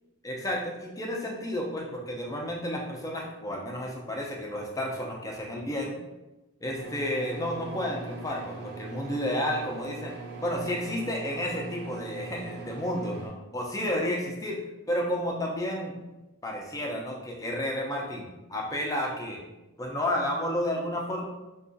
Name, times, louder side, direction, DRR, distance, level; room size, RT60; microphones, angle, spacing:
voice 1, 0.2-6.0 6.6-16.0 16.4-19.4 19.8-21.2, left 1 dB, 15° left, 0 dB, 0.5 m, -31 dB
sound 1, 6.7-13.3, right 3 dB, 50° right, 0.7 m, -41 dB
4.6 x 2.3 x 2.6 m, 1.0 s
head